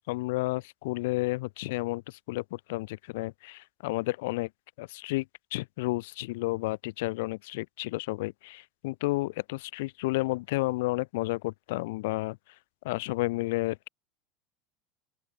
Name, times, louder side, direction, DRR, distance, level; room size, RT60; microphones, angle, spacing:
voice 1, 0.1-4.5 4.8-5.3 5.5-12.4 12.8-13.9, left 21 dB, 75° left, 1.1 m, -31 dB
open air
supercardioid pair, 155°, 0 cm